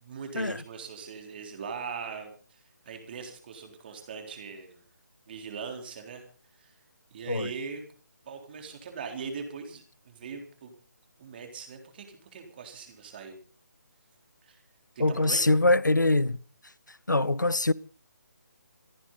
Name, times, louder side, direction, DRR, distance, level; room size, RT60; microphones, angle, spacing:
voice 1, 0.0-4.8 5.3-6.3 6.5-6.7 7.1-7.8 8.3-10.7 11.2-13.4 14.4-14.6 15.0-15.4, right 5 dB, 30° right, 3.8 m, -41 dB
voice 2, 15.0-16.4 17.1-17.7, left 2 dB, 85° left, 0.7 m, -23 dB
27.5 x 10.0 x 4.1 m
figure-of-eight pair, 150°, 10 cm